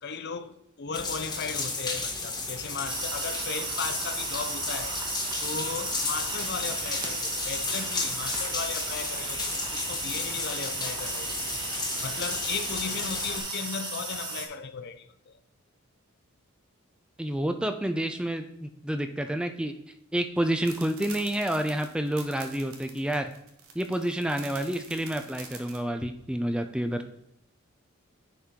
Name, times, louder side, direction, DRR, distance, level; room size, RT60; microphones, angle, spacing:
voice 1, 0.0-5.0 5.4-11.6 12.0-15.4 26.0-26.1, left 5 dB, 50° left, 0.5 m, -36 dB
sound 1, 0.9-13.4, left 3 dB, 20° left, 1.4 m, -34 dB
sound 2, 2.8-14.5, right 3 dB, 20° right, 1.1 m, -35 dB
voice 2, 17.2-19.7 20.1-23.3 23.8-27.0, right 1 dB, 5° right, 0.3 m, -29 dB
sound 3, 20.6-25.8, right 6 dB, 90° right, 1.3 m, -45 dB
10.0 x 4.4 x 3.7 m
head